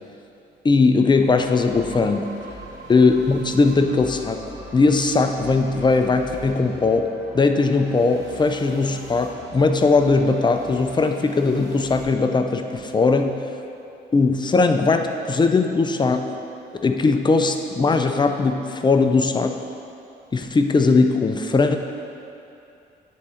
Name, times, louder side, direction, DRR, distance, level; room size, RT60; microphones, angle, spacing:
voice 1, 0.6-2.3 2.9-4.4 4.7-13.4 14.1-16.3 16.8-19.6 20.3-21.8, left 3 dB, 20° left, 6 dB, 0.4 m, -19 dB
sound 1, 1.0-12.0, equal, 20° right, 1.4 m, -41 dB
9.3 x 3.7 x 4.3 m, 2.7 s
cardioid pair, 90°, 20 cm